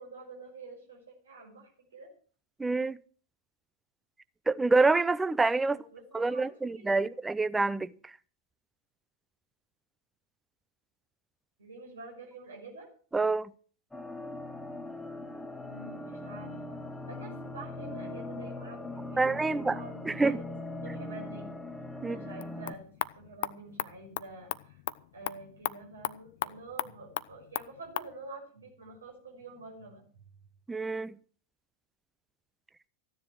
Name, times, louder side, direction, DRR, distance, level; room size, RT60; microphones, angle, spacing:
voice 1, 0.0-2.1 5.6-7.1 11.6-12.9 15.7-20.5 20.8-21.5 22.0-24.8 25.1-30.0, right 3 dB, 70° right, 6.0 m, -47 dB
voice 2, 2.6-3.0 4.5-5.8 6.1-7.9 13.1-13.5 19.2-19.8 20.1-20.4 22.0-22.2 30.7-31.2, right 3 dB, 10° right, 0.6 m, -27 dB
sound 1, 13.9-22.7, left 2 dB, 5° left, 1.6 m, -40 dB
sound 2, 22.3-28.1, left 13 dB, 55° left, 0.6 m, -38 dB
15.0 x 10.0 x 6.1 m
figure-of-eight pair, 90°, 0 cm